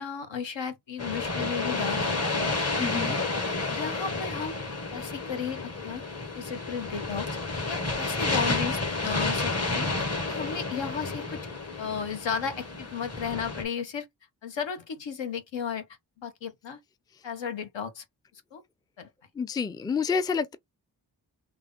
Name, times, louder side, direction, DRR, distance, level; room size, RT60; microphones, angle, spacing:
voice 1, 0.0-2.6 3.3-3.4 3.7-4.6 4.9-6.0 6.4-7.3 7.7-11.4 11.8-14.1 14.4-15.9 16.2-16.8 17.2-18.0 18.3-18.6 19.0-19.1, left 7 dB, 75° left, 1.0 m, -34 dB
sound 1, 1.0-13.6, left 3 dB, 35° left, 1.3 m, -31 dB
voice 2, 2.8-3.2 19.4-20.6, left 5 dB, 10° left, 0.4 m, -28 dB
3.4 x 2.8 x 3.6 m
cardioid pair, 40°, 45 cm